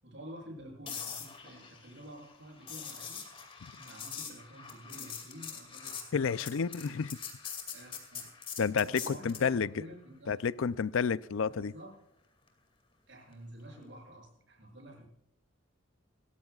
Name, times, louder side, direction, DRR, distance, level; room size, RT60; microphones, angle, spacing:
voice 1, 0.0-3.3 3.8-7.0 7.7-8.3 8.8-10.4 11.5-11.9 13.1-15.1, equal, 60° right, 7.7 m, -50 dB
sound 1, 0.9-9.5 13.7-13.9, left 6 dB, 25° left, 2.4 m, -44 dB
voice 2, 6.1-7.1 8.6-9.7 10.3-11.7, left 6 dB, 70° left, 0.4 m, -30 dB
27.0 x 14.0 x 2.4 m
head